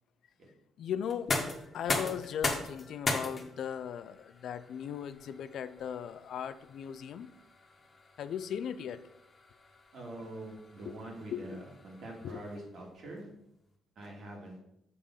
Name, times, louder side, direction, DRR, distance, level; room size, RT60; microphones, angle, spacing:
voice 1, 0.8-1.4 1.7-7.3 8.2-9.0 10.9-11.0 11.3-11.6 12.2-12.4, left 8 dB, 70° left, 13 dB, 0.4 m, -38 dB
sound 1, 1.0-12.8, left 3 dB, 35° left, 1.5 m, -39 dB
voice 2, 9.9-13.3 14.0-14.6, right 1 dB, 60° right, -1 dB, 2.1 m, -44 dB
6.8 x 3.6 x 5.5 m, 0.82 s
cardioid pair, 90°, 0 cm